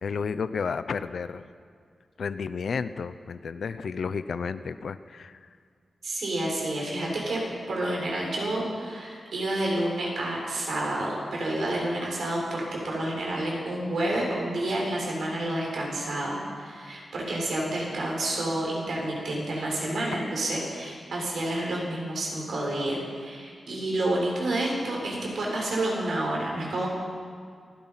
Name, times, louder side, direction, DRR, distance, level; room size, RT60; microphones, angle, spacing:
voice 1, 0.0-1.4 2.2-5.4 20.0-20.1, left 5 dB, 65° left, 12 dB, 0.8 m, -32 dB
voice 2, 6.0-7.4 7.7-26.9, right 1 dB, 70° right, -2 dB, 6.9 m, -29 dB
28.0 x 17.0 x 5.9 m, 2.2 s
wide cardioid pair, 175°, 0 cm